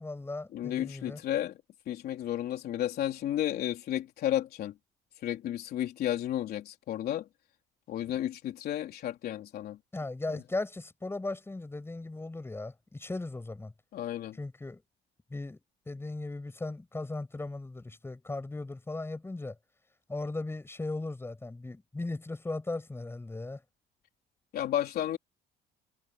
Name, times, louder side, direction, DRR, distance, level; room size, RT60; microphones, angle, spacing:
voice 1, 0.0-1.2 9.9-13.7 14.4-14.8 15.3-15.6 15.9-19.5 20.1-23.6, left 2 dB, 15° left, 6.9 m, -37 dB
voice 2, 0.5-1.5 1.9-4.7 5.2-7.3 7.9-9.8 10.3-10.4 13.9-14.4 24.5-25.2, left 12 dB, 65° left, 3.5 m, -32 dB
cardioid pair, 110°, 17 cm